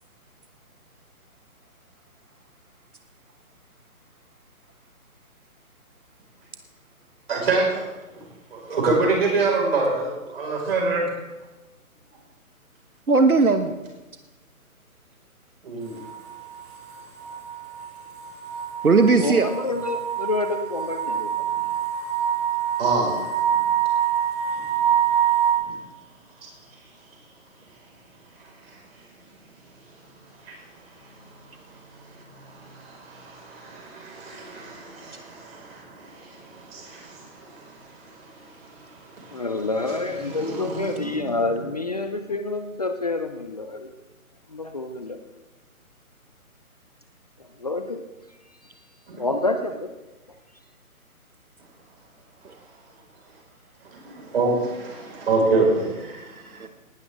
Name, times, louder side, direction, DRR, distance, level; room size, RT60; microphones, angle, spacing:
voice 1, 7.3-7.9 8.1-8.2 8.5-11.0 15.6-15.9 22.8-23.3 25.6-25.8 28.4-28.8 30.4-39.5 40.2-41.4 49.1-49.2 53.8-56.5, right 3 dB, 45° right, -2 dB, 5.2 m, -27 dB
voice 2, 13.1-13.7 18.8-19.5 56.2-56.7, right 4 dB, 80° right, 8 dB, 1.2 m, -18 dB
sound 1, 15.9-25.5, right 9 dB, 20° right, 2.7 m, -25 dB
voice 3, 19.2-21.3 39.3-43.9 44.5-45.2 47.6-48.0 49.2-49.9, left 3 dB, 30° left, 7 dB, 0.6 m, -28 dB
19.0 x 12.0 x 3.6 m, 1.1 s
figure-of-eight pair, 140°, 43 cm